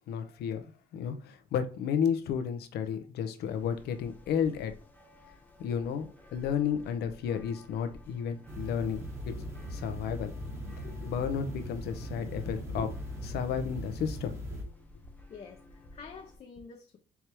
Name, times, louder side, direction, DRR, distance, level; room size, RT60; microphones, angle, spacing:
voice 1, 0.1-4.7 5.6-9.0 9.8-10.3 11.1-12.9 13.3-14.4, left 7 dB, 75° left, 0.8 m, -32 dB
sound 1, 3.4-16.4, left 2 dB, 10° left, 0.9 m, -53 dB
voice 2, 5.2-5.6 9.3-9.7 10.7-11.1 12.2-12.4 12.7-13.0 15.3-17.0, left 5 dB, 40° left, 0.7 m, -49 dB
sound 2, 8.5-14.6, equal, 15° right, 1.2 m, -40 dB
4.6 x 3.4 x 3.0 m
cardioid pair, 110°, 17 cm